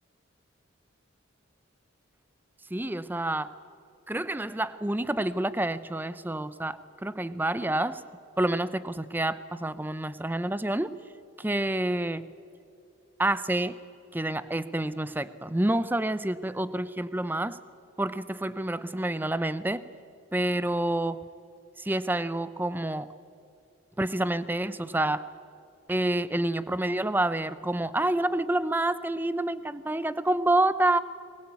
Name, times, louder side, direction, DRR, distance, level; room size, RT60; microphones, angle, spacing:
voice 1, 2.7-3.6 4.1-8.0 8.4-11.0 11.4-12.3 13.2-13.8 14.1-17.6 18.0-19.9 20.3-21.3 21.8-23.1 24.0-25.3 25.9-31.0, right 1 dB, 10° right, 15 dB, 0.5 m, -28 dB
22.0 x 21.5 x 8.4 m, 2.6 s
head